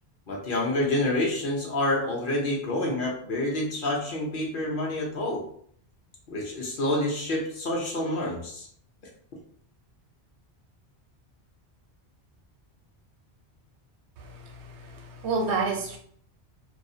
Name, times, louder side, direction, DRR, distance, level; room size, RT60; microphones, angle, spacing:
voice 1, 0.3-5.4 6.3-8.7, left 1 dB, 60° left, -2 dB, 0.7 m, -28 dB
voice 2, 14.2-16.0, right 4 dB, 80° right, 2 dB, 0.9 m, -30 dB
2.4 x 2.0 x 2.6 m, 0.62 s
omnidirectional pair, 1.1 m